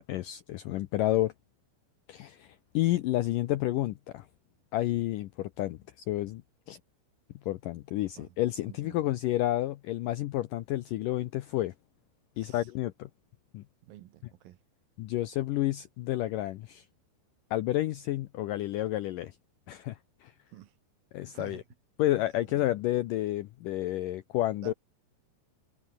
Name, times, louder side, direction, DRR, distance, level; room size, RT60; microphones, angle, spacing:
voice 1, 0.0-1.3 2.1-4.3 4.7-6.4 6.7-6.8 7.5-11.7 12.4-13.1 13.5-13.6 15.0-16.9 17.5-19.4 19.7-20.3 21.1-21.6 22.0-24.7, left 15 dB, 90° left, 1.9 m, -30 dB
voice 2, 8.0-8.4 8.7-9.0 12.4-12.7 13.8-14.6 20.5-20.7 21.3-21.6 22.5-22.7 24.6-24.7, right 14 dB, 70° right, 2.5 m, -49 dB
omnidirectional pair, 4.8 m